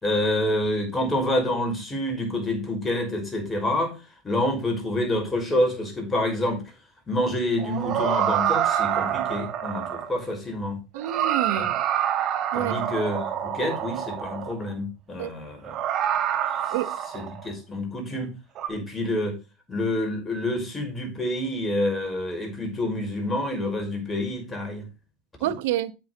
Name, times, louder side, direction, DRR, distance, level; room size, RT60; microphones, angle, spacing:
voice 1, 0.0-3.9 4.2-6.7 7.1-10.8 11.6-11.7 12.5-15.8 16.7-16.8 17.1-18.3 18.7-19.4 19.7-24.9 25.4-25.5, left 1 dB, 20° left, 5.7 m, -27 dB
sound 1, 7.6-10.3 11.0-14.7 15.6-17.5 18.6-18.7, right 10 dB, 50° right, 3.0 m, -27 dB
voice 2, 10.9-11.7 12.5-12.8 15.2-15.3 16.7-16.9 25.4-25.9, right 13 dB, 70° right, 0.9 m, -28 dB
9.0 x 8.1 x 4.1 m
hypercardioid pair, 85°, 0 cm